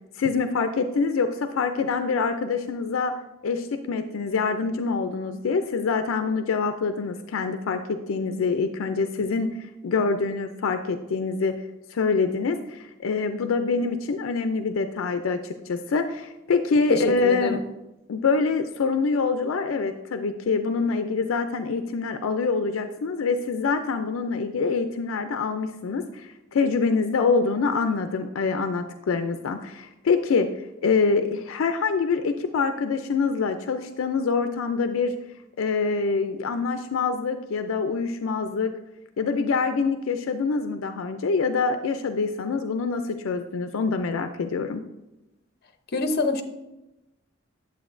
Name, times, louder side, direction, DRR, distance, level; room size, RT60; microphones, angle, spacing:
voice 1, 0.2-3.1 3.4-11.5 11.9-17.6 18.1-30.5 30.8-35.1 35.6-38.7 39.2-44.8, left 4 dB, 85° left, 8 dB, 0.4 m, -25 dB
voice 2, 16.9-17.6 45.9-46.4, left 2 dB, 55° left, 7 dB, 0.7 m, -25 dB
9.1 x 8.1 x 2.5 m, 0.96 s
head